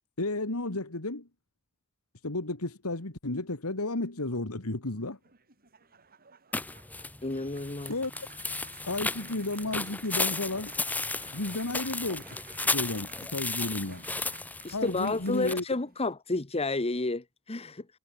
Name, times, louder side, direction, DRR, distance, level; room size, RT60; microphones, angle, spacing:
voice 1, 0.2-1.3 2.2-5.2 7.9-8.1 8.9-10.7 11.3-12.2 12.6-14.0 14.7-15.6, left 2 dB, 85° left, 2.3 m, -32 dB
sound 1, 5.1-16.1, right 7 dB, 45° right, 5.1 m, -55 dB
sound 2, 6.5-15.6, left 3 dB, 5° left, 0.5 m, -34 dB
voice 2, 7.2-7.9 14.6-17.9, left 2 dB, 30° left, 1.1 m, -31 dB
head